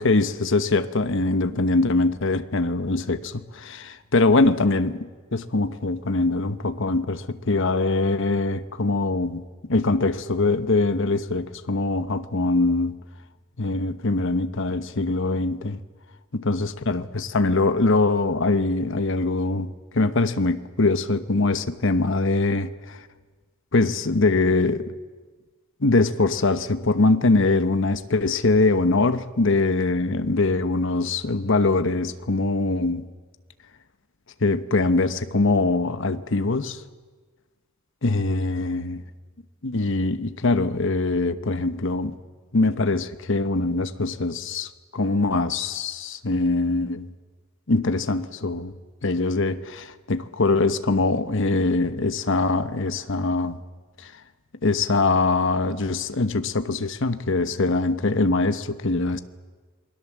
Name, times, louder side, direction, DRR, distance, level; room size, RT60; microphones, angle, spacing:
voice 1, 0.0-13.0 13.6-15.8 16.3-23.0 23.7-24.9 25.8-33.0 34.4-36.8 38.0-39.0 39.6-42.2 42.5-47.1 47.7-48.7 49.0-53.6 54.0-54.1 54.6-59.2, left 3 dB, 60° left, 1.1 m, -23 dB
27.5 x 20.5 x 7.4 m
head